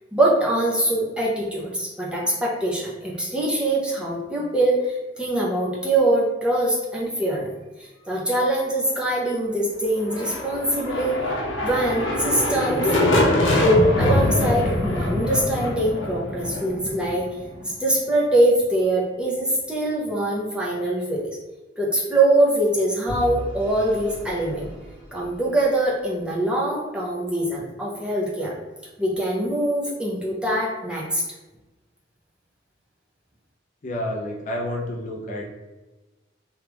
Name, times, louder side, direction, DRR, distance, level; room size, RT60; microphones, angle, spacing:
voice 1, 0.1-7.5 7.8-11.2 11.6-12.9 13.5-17.3 17.6-21.3 21.8-24.7 25.1-28.5 29.0-31.2, right 1 dB, 5° right, -4 dB, 0.6 m, -23 dB
sound 1, 9.9-17.7, left 1 dB, 85° left, 0.7 m, -24 dB
Vehicle / Engine, 23.1-26.1, equal, 85° right, 1.4 m, -37 dB
voice 2, 33.8-35.4, left 1 dB, 40° left, -1 dB, 0.5 m, -29 dB
3.1 x 2.3 x 3.4 m, 1.1 s
head